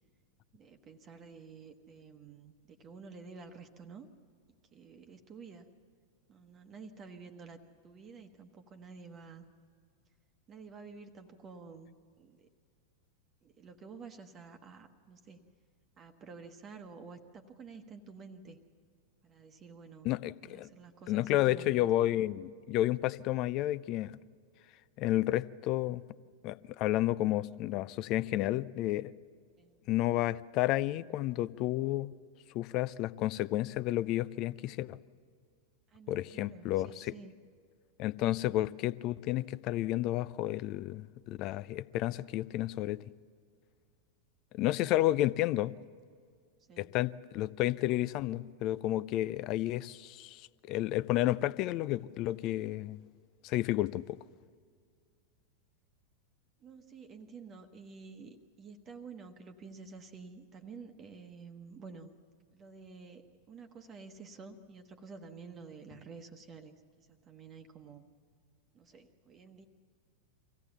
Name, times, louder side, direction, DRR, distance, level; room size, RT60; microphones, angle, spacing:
voice 1, 0.5-4.1 4.7-5.7 6.3-7.6 7.8-9.5 10.5-12.5 13.4-15.5 16.0-18.6 19.2-20.1 20.5-21.8 29.6-29.8 35.9-37.3 46.7-46.9 56.6-62.2 62.5-68.0 68.7-69.7, right 5 dB, 25° right, 1.2 m, -50 dB
voice 2, 20.0-20.7 21.1-24.1 25.0-26.0 26.4-29.1 29.9-32.1 32.5-35.0 36.1-37.1 38.0-43.0 44.5-45.8 46.8-53.0 53.4-54.2, left 15 dB, 40° left, 0.5 m, -31 dB
24.5 x 16.0 x 7.1 m
figure-of-eight pair, 90°, 0 cm